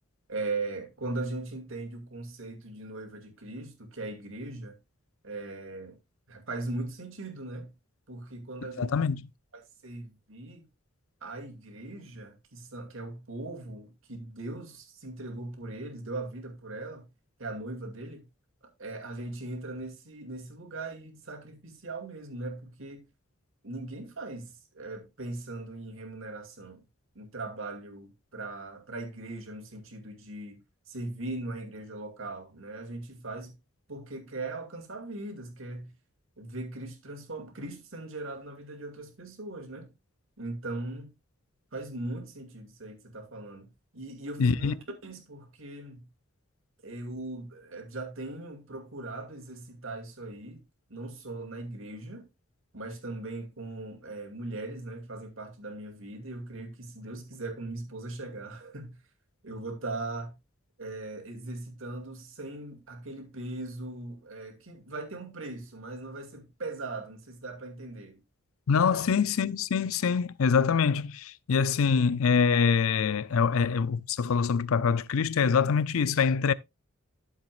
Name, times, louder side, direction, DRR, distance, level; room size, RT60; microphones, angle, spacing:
voice 1, 0.3-4.8 5.2-6.0 6.3-7.7 8.1-9.0 9.5-10.7 11.2-17.1 17.4-18.3 18.8-23.1 23.6-26.8 27.1-30.6 30.9-33.6 33.9-35.9 36.4-39.9 40.4-41.1 41.7-44.8 45.0-46.1 46.8-50.6 50.9-52.3 52.7-59.0 59.4-60.3 60.8-68.2 68.9-69.0, right 2 dB, 70° right, 2.4 m, -39 dB
voice 2, 8.8-9.2 44.4-44.7 68.7-76.5, left 6 dB, 75° left, 0.5 m, -25 dB
12.5 x 7.3 x 2.4 m
head